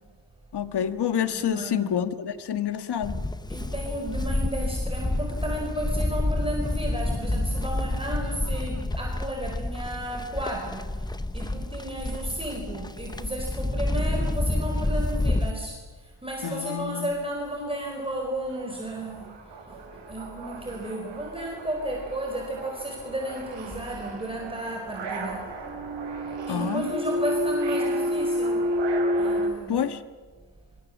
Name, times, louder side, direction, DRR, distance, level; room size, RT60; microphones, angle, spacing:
voice 1, 0.5-3.2 16.4-17.1 26.5-26.9 29.7-30.0, left 9 dB, 65° left, 10 dB, 1.6 m, -28 dB
voice 2, 1.3-1.9 3.5-25.6 26.5-28.8 29.2-29.9, right 1 dB, 10° right, 0 dB, 4.6 m, -33 dB
Livestock farm animals working animals, 3.0-15.5, left 1 dB, 10° left, 0.9 m, -29 dB
sound 1, 17.6-17.7 18.0-29.5, equal, 75° right, 5.0 m, -31 dB
25.5 x 25.0 x 7.3 m, 1.4 s
cardioid pair, 105°, 43 cm